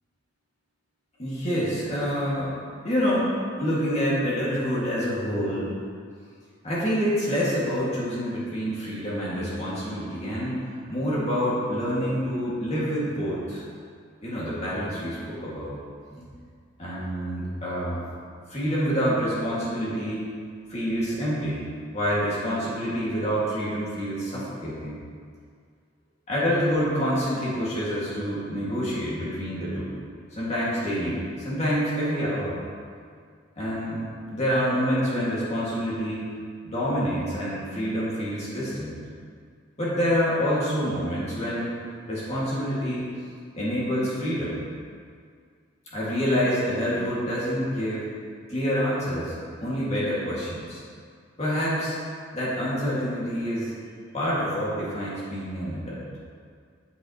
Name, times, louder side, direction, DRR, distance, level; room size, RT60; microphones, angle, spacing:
voice 1, 1.2-2.5 2.8-3.3 3.6-5.7 6.6-10.6 10.9-13.6 14.2-15.8 16.1-16.3 16.8-18.0 18.5-20.3 20.7-21.6 21.9-25.0 26.3-29.9 30.3-32.6 33.6-34.0 34.3-36.3 36.7-39.0 39.8-41.7 42.1-43.0 43.5-44.6 45.9-48.0 48.5-49.3 49.6-50.8 51.4-52.0 52.3-53.7 54.1-56.1, equal, 35° left, -8 dB, 2.2 m, -27 dB
9.0 x 8.1 x 3.1 m, 2.1 s
head